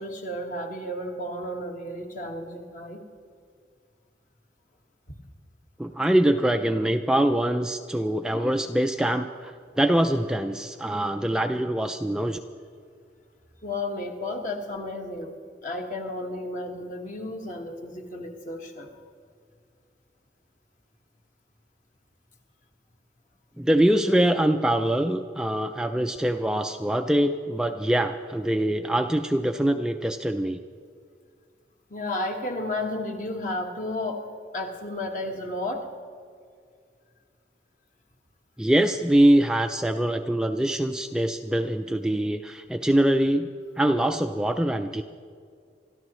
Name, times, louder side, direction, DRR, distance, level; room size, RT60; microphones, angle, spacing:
voice 1, 0.0-3.0 5.1-5.2 13.6-15.4 15.6-18.9 31.9-34.3 34.5-35.9, left 1 dB, 45° left, 2 dB, 1.6 m, -32 dB
voice 2, 5.8-12.4 23.6-30.6 38.6-45.0, right 1 dB, 5° right, 5 dB, 0.4 m, -23 dB
27.0 x 13.5 x 3.1 m, 2.2 s
head